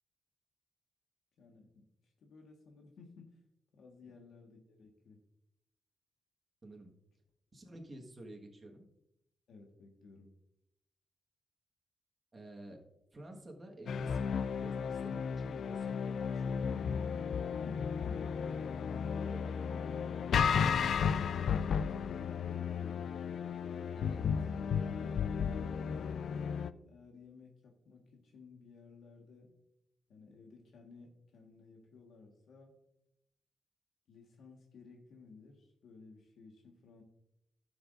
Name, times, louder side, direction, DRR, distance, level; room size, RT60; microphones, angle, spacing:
voice 1, 1.4-3.4 3.7-5.2 9.5-10.3 21.3-23.3 24.9-29.5 30.1-32.7 34.1-37.0, left 4 dB, 90° left, 1 dB, 1.5 m, -56 dB
voice 2, 6.6-6.9 7.5-8.9 12.3-16.8 19.1-19.8 20.9-21.2 23.9-24.3, right 1 dB, 25° right, 1 dB, 1.5 m, -51 dB
sound 1, 13.9-26.7, left 6 dB, 70° left, 0.3 m, -34 dB
15.0 x 7.0 x 2.6 m, 0.81 s
wide cardioid pair, 150°, 0 cm